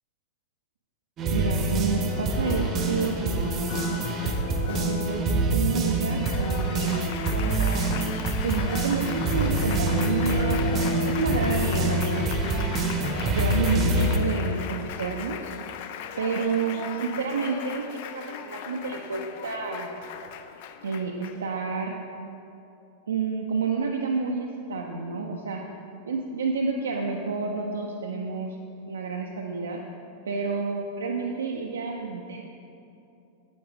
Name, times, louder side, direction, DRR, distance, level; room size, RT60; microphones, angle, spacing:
sound 1, 1.2-14.2, right 2 dB, 30° right, 0.8 m, -26 dB
voice 1, 1.3-3.9 4.7-8.1 8.4-10.6 11.0-12.8 13.3-15.5 16.2-19.9 20.8-22.0 23.1-25.6 26.1-28.6 28.9-29.8 30.3-32.5, right 4 dB, 70° right, 1 dB, 0.5 m, -30 dB
Applause, 1.9-21.5, left 8 dB, 50° left, 0.4 m, -37 dB
8.5 x 7.8 x 3.5 m, 2.8 s
figure-of-eight pair, 90°, 0 cm